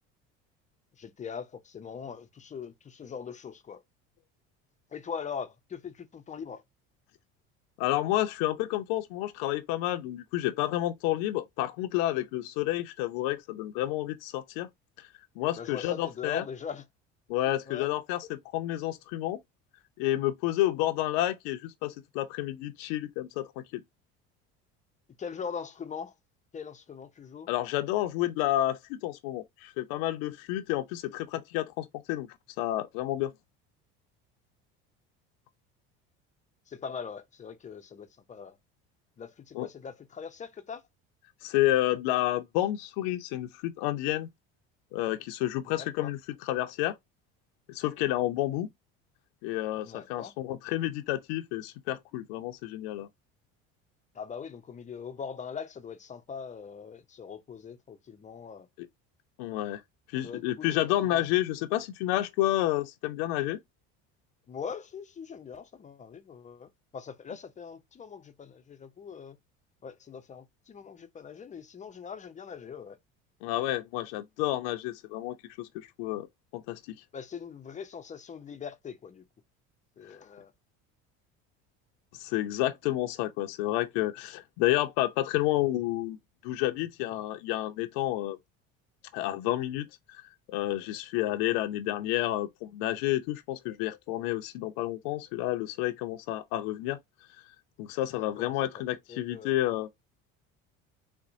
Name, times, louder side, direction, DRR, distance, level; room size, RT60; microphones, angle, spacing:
voice 1, 1.0-3.8 4.9-6.6 15.6-16.8 17.7-17.9 25.2-26.1 26.5-27.5 36.7-38.5 39.2-40.8 45.6-46.1 49.8-50.3 54.1-58.7 60.2-60.7 61.0-61.3 64.5-69.4 69.8-73.0 77.1-79.2 80.0-80.5 98.2-98.8 99.1-99.5, left 6 dB, 25° left, 0.5 m, -41 dB
voice 2, 7.8-14.7 15.0-15.1 15.4-16.4 17.3-19.4 20.0-23.8 27.5-32.3 32.6-33.3 39.5-39.7 41.4-44.3 44.9-47.0 47.7-48.7 49.4-53.1 58.8-58.9 59.4-59.8 60.1-63.6 73.4-76.3 76.5-77.0 82.1-86.2 86.4-88.4 89.1-90.2 90.5-97.0 97.8-99.9, left 15 dB, 80° left, 0.5 m, -30 dB
4.1 x 2.1 x 2.5 m
supercardioid pair, 95°, 30 cm